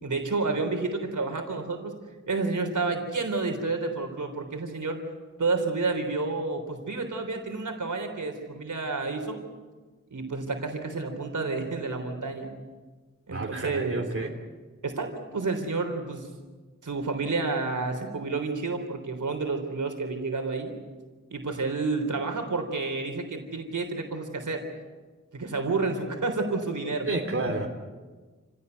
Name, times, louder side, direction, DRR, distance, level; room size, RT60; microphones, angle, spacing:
voice 1, 0.0-1.9 2.3-5.0 5.4-9.4 10.1-12.5 13.3-14.0 14.8-16.3 16.8-20.7 21.3-24.6 25.3-27.1, right 3 dB, 75° right, 4 dB, 3.7 m, -30 dB
voice 2, 13.3-14.3 27.1-27.7, right 2 dB, 45° right, 1 dB, 3.3 m, -30 dB
29.0 x 16.5 x 8.2 m, 1.3 s
wide cardioid pair, 65°, 30 cm